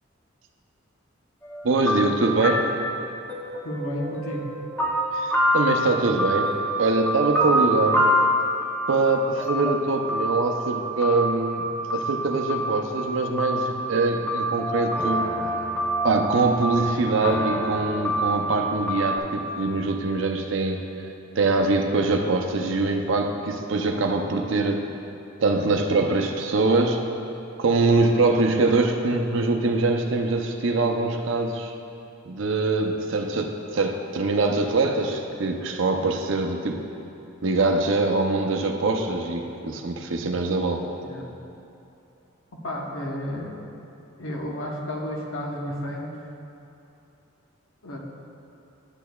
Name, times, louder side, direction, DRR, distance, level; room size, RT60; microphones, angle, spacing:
sound 1, 1.4-19.2, equal, 10° left, 0.6 m, -27 dB
voice 1, 1.6-2.7 5.1-6.5 6.8-8.0 8.9-15.3 16.0-20.8 21.4-24.9 25.4-27.0 27.6-31.7 32.3-36.9 37.4-40.9, right 3 dB, 65° right, 4 dB, 0.6 m, -23 dB
voice 2, 3.6-4.5 41.0-41.3 42.6-43.6 44.2-46.1 47.8-48.0, equal, 80° left, -1 dB, 1.0 m, -32 dB
9.9 x 8.4 x 2.3 m, 2.8 s
head